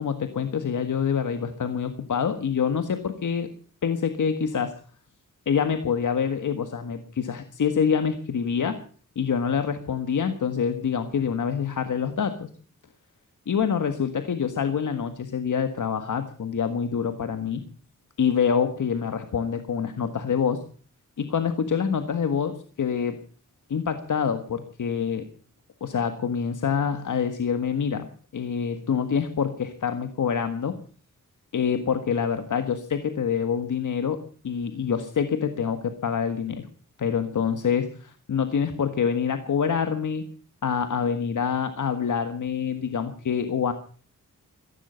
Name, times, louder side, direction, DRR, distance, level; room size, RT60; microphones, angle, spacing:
voice 1, 0.0-3.5 3.8-4.7 5.4-8.8 9.1-12.5 13.5-17.6 18.2-20.6 21.2-23.2 23.7-25.2 25.8-28.1 28.3-30.8 31.5-34.2 34.4-36.7 37.0-37.9 38.3-40.2 40.6-43.7, left 7 dB, 65° left, 8 dB, 1.6 m, -26 dB
16.0 x 15.0 x 5.7 m, 0.42 s
wide cardioid pair, 95°, 33 cm